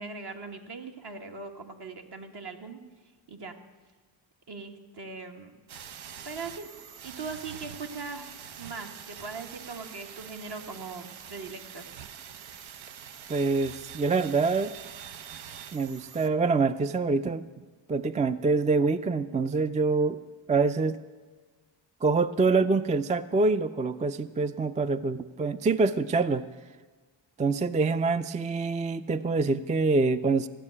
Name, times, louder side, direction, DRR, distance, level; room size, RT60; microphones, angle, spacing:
voice 1, 0.0-2.8 3.3-3.6 4.5-5.5 6.2-6.7 7.0-8.2 8.6-11.8 22.4-22.7, right 4 dB, 55° right, 4 dB, 1.5 m, -40 dB
sound 1, 5.7-16.3, right 8 dB, 90° right, 0.7 m, -45 dB
voice 2, 13.3-14.7 15.7-17.4 17.9-20.2 20.5-21.0 22.0-26.5 27.4-30.5, right 3 dB, 20° right, 13 dB, 0.3 m, -25 dB
15.0 x 6.6 x 9.8 m, 1.4 s
cardioid pair, 80°, 46 cm